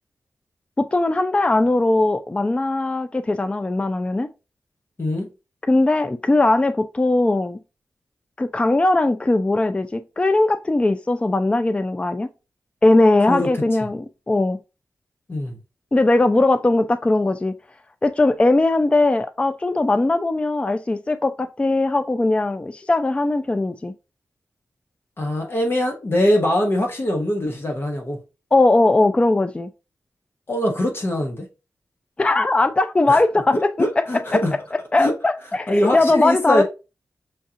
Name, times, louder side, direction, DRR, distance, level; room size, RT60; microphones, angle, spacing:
voice 1, 0.8-4.3 5.7-7.6 8.4-12.3 12.8-14.6 15.9-17.5 18.0-23.9 28.5-29.7 32.2-34.4 34.7-36.6, left 2 dB, 20° left, 0.3 m, -19 dB
voice 2, 25.2-28.2 30.5-31.4 33.1-33.2 33.5-34.6 35.0-35.1 35.7-36.6, left 1 dB, 40° left, 1.0 m, -22 dB
6.2 x 2.4 x 2.8 m
wide cardioid pair, 80°, 6 cm